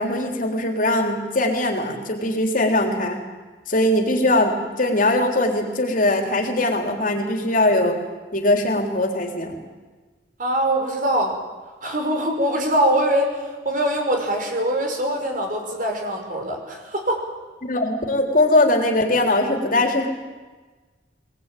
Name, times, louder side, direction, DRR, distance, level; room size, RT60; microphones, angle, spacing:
voice 1, 0.0-3.2 3.7-8.0 8.3-9.6 17.6-20.1, left 1 dB, 50° left, 3 dB, 3.6 m, -21 dB
voice 2, 10.4-11.4 11.8-17.3, right 1 dB, 50° right, 2 dB, 5.6 m, -23 dB
23.5 x 19.0 x 9.3 m, 1.3 s
head